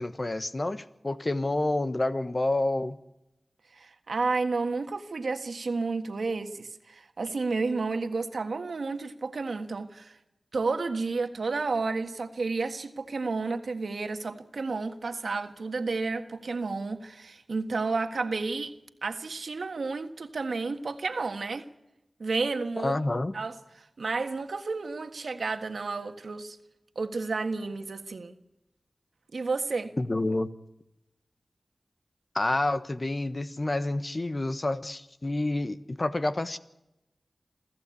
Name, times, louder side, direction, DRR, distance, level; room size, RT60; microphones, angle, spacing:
voice 1, 0.0-3.0 22.8-23.3 30.0-30.5 32.3-36.6, left 2 dB, 40° left, 11 dB, 1.2 m, -28 dB
voice 2, 3.7-10.2 10.5-18.7 19.0-21.6 22.2-23.0 23.3-26.6 26.9-28.3 29.3-29.9, right 3 dB, 85° right, 7 dB, 1.6 m, -31 dB
28.0 x 14.5 x 8.5 m, 0.93 s
wide cardioid pair, 50°, 0 cm